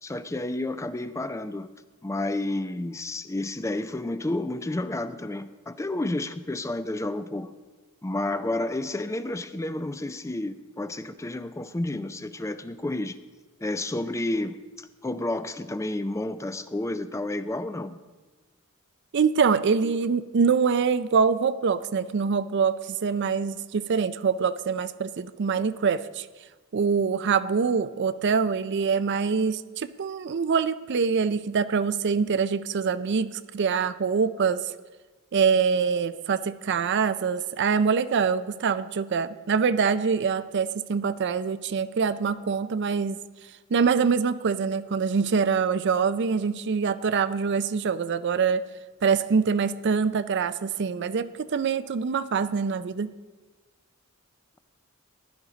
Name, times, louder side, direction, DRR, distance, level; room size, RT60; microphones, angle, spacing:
voice 1, 0.0-1.7 2.0-7.5 8.0-13.2 13.6-18.0, left 2 dB, 15° left, 0.4 m, -31 dB
voice 2, 19.1-26.3 26.7-34.6 35.3-43.2 43.7-48.7 49.0-53.1, right 5 dB, 55° right, 0.4 m, -24 dB
15.5 x 11.0 x 3.9 m
head